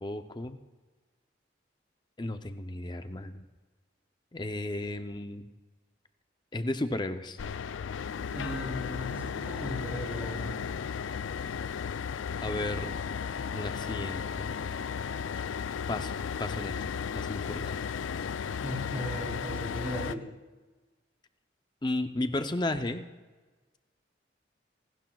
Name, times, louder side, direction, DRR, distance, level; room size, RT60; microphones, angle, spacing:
voice 1, 0.0-0.6 2.2-3.4 4.3-5.5 6.5-7.4 12.4-12.9 13.5-14.5 15.9-16.1 16.4-16.9 17.1-17.8 21.8-23.1, left 2 dB, 25° left, 9 dB, 0.6 m, -34 dB
sound 1, 7.4-20.1, left 6 dB, 90° left, 0.4 m, -35 dB
voice 2, 8.3-10.6 18.6-20.3, equal, 10° right, -4 dB, 3.7 m, -37 dB
30.0 x 12.0 x 2.3 m, 1.3 s
head